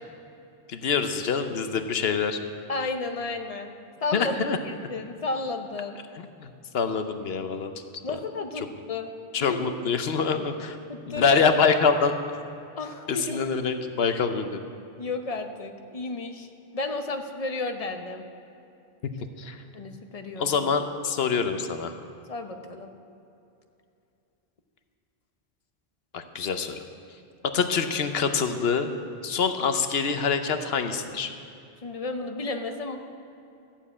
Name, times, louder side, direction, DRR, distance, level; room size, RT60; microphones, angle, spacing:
voice 1, 0.7-2.4 4.1-4.6 6.4-7.7 8.1-8.2 9.3-10.8 11.1-12.1 13.1-14.6 19.4-19.6 20.4-21.9 26.1-26.8 27.5-28.9 29.2-31.3, left 5 dB, 70° left, 8 dB, 1.0 m, -25 dB
voice 2, 2.7-3.7 4.0-4.4 4.6-6.0 8.0-9.1 9.4-9.6 10.9-11.4 12.8-13.4 14.1-14.2 15.0-16.5 16.7-18.2 19.7-20.4 22.3-22.9 31.8-33.0, left 3 dB, 35° left, 6 dB, 0.9 m, -32 dB
12.5 x 7.3 x 8.4 m, 2.7 s
omnidirectional pair, 1.1 m